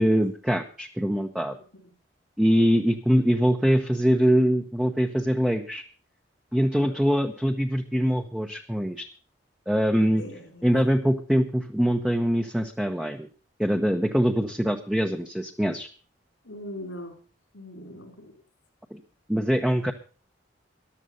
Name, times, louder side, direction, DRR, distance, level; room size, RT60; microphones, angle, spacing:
voice 1, 0.0-1.5 2.4-5.8 6.5-9.1 9.7-10.2 10.6-13.3 13.6-15.9 18.9-19.0 19.3-19.9, equal, 5° right, 3 dB, 1.0 m, -23 dB
voice 2, 10.1-10.7 16.4-17.2 17.5-18.3, equal, 85° left, 4 dB, 4.9 m, -40 dB
14.5 x 11.5 x 5.4 m, 0.37 s
head